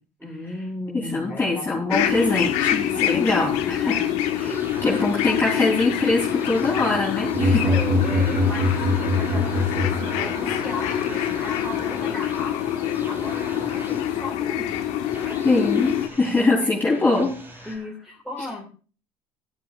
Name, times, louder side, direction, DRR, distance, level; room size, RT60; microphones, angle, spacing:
voice 1, 0.2-1.8 3.0-3.3 3.9-4.1 4.5-5.4 6.5-6.6 7.2-12.8 13.0-14.7 15.3-15.4 16.1-17.0 17.7-18.6, left 1 dB, ahead, -1 dB, 2.2 m, -36 dB
voice 2, 0.9-4.0 4.4-4.5 4.8-7.7 15.4-17.7, left 3 dB, 15° left, -5 dB, 3.2 m, -23 dB
sound 1, 1.9-16.1, left 11 dB, 80° left, 1.3 m, -26 dB
sound 2, 4.0-17.8, right 2 dB, 20° right, 3.5 m, -41 dB
sound 3, 7.3-10.6, left 2 dB, 35° right, 3.3 m, -22 dB
14.5 x 11.0 x 2.4 m, 0.39 s
supercardioid pair, 100°, 12 cm